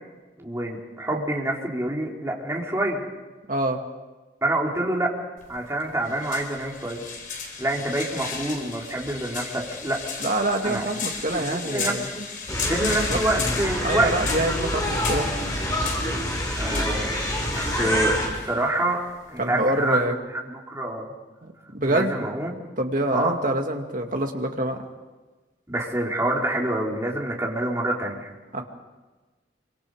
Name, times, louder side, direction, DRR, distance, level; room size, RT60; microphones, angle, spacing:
voice 1, 0.4-3.0 4.4-5.1 5.5-7.0 7.6-10.0 10.6-10.9 11.3-12.2 12.7-14.3 16.6-17.2 17.5-19.0 19.3-20.0 20.4-21.1 21.9-22.6 23.1-23.4 25.7-28.3, right 1 dB, 15° right, -2 dB, 4.0 m, -27 dB
voice 2, 3.5-3.8 10.2-12.1 13.1-13.2 13.8-15.3 19.4-20.2 21.4-22.3 22.8-24.8 28.5-28.6, right 1 dB, 45° right, 3 dB, 2.4 m, -26 dB
sound 1, 5.4-20.0, left 5 dB, 50° left, 4.3 m, -35 dB
sound 2, 12.5-18.3, equal, 20° left, 5.4 m, -26 dB
27.0 x 25.0 x 5.0 m, 1.2 s
head